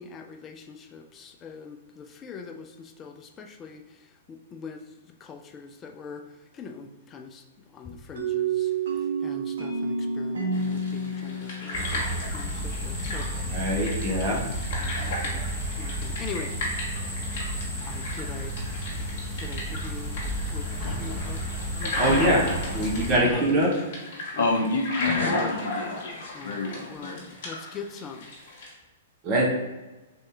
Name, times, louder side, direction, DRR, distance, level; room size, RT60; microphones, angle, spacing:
voice 1, 0.0-4.8 5.2-6.3 6.5-7.4 7.7-8.7 9.2-13.6 14.8-15.4 15.8-16.5 17.8-18.6 19.4-20.2 20.5-21.4 21.8-22.2 22.7-23.5 24.3-24.8 26.3-28.3, left 5 dB, 25° left, 0.4 m, -42 dB
sound 1, 8.2-12.8, right 4 dB, 65° right, 0.7 m, -29 dB
sound 2, 10.5-28.7, left 2 dB, 55° left, 1.3 m, -34 dB
sound 3, 11.7-23.1, equal, 5° left, 1.1 m, -32 dB
voice 2, 13.5-14.4 22.0-22.4 22.7-23.7 29.2-29.4, right 1 dB, 30° right, 0.9 m, -23 dB
voice 3, 24.4-27.2, left 3 dB, 70° left, 0.6 m, -29 dB
3.4 x 2.7 x 3.5 m
figure-of-eight pair, 110°, 0 cm